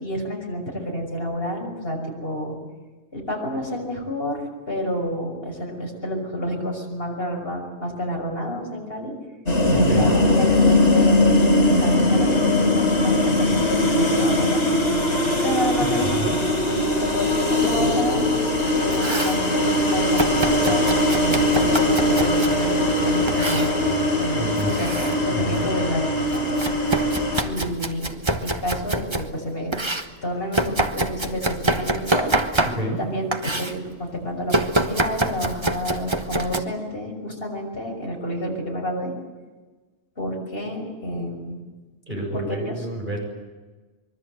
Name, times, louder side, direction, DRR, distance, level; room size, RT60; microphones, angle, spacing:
voice 1, 0.0-2.6 3.1-9.1 9.7-11.3 11.8-14.6 15.4-26.5 27.4-28.2 28.4-29.7 30.2-32.4 33.0-39.1 40.2-41.6 42.3-42.9, equal, 55° left, 1 dB, 6.5 m, -29 dB
sound 1, 9.5-27.4, left 1 dB, 70° left, 4.8 m, -20 dB
voice 2, 9.7-10.1 15.8-16.4 24.3-24.7 25.3-25.7 32.7-33.0 42.1-43.2, right 1 dB, 45° right, 0 dB, 7.6 m, -29 dB
Domestic sounds home sounds, 18.7-19.4 20.2-22.6 23.3-23.8 24.5-25.2 25.6-29.3 29.7-33.0 33.3-33.8 34.5-36.6, right 2 dB, 25° right, 1.4 m, -26 dB
25.0 x 23.5 x 8.0 m, 1.3 s
omnidirectional pair, 1.2 m